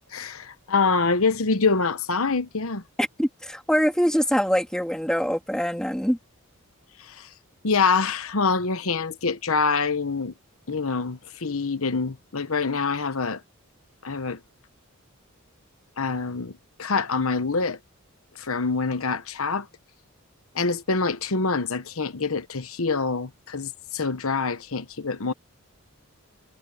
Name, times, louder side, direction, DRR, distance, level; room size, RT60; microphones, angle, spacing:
voice 1, 0.1-2.8 7.0-7.3 7.6-10.3 10.7-13.4 14.0-14.4 16.0-17.8 18.3-19.7 20.5-25.3, left 4 dB, 70° left, 1.1 m, -25 dB
voice 2, 3.0-6.2, equal, 5° left, 2.6 m, -24 dB
head